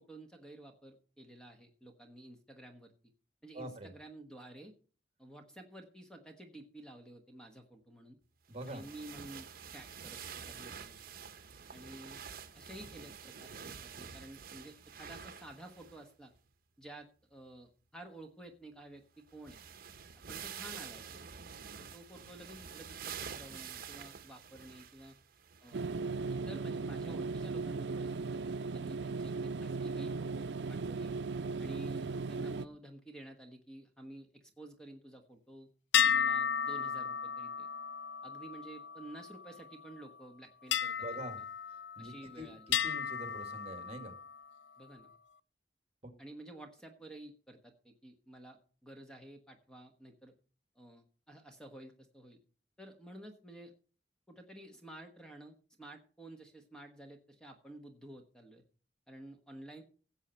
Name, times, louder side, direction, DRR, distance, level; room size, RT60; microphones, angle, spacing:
voice 1, 0.0-2.9 3.4-4.7 5.2-8.2 8.7-11.0 11.7-12.2 12.5-16.3 16.8-19.6 20.3-21.1 21.8-25.2 25.6-25.8 26.3-31.1 31.6-35.7 36.0-37.7 38.2-41.2 42.0-42.6 44.8-45.1 46.2-50.3 50.7-52.4 52.8-53.7 54.3-58.6 59.1-59.8, right 1 dB, 5° left, 4 dB, 1.3 m, -52 dB
voice 2, 3.5-3.9 8.5-8.8 41.0-41.4 42.0-42.6 42.8-44.1 46.0-46.1, right 1 dB, 35° right, 6 dB, 2.2 m, -44 dB
sound 1, 8.6-16.1 16.3-16.4 19.0-19.1 19.3-25.9 26.5-26.6 27.8-27.9, right 7 dB, 55° right, 0.9 m, -48 dB
sound 2, 25.7-32.7, right 4 dB, 80° right, 0.5 m, -37 dB
sound 3, 35.9-39.6 40.7-42.3 42.7-44.4, left 8 dB, 85° left, 0.4 m, -34 dB
17.0 x 7.4 x 4.4 m, 0.39 s
head